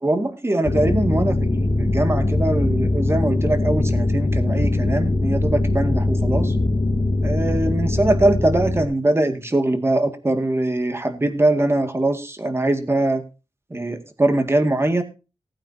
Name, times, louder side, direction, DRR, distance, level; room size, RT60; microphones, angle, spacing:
voice 1, 0.0-6.5 7.2-13.2 13.7-15.0, right 1 dB, 25° right, 7 dB, 2.0 m, -22 dB
sound 1, 0.6-8.8, left 2 dB, 45° left, 1.5 m, -21 dB
19.0 x 8.8 x 2.8 m, 0.31 s
wide cardioid pair, 125°, 11 cm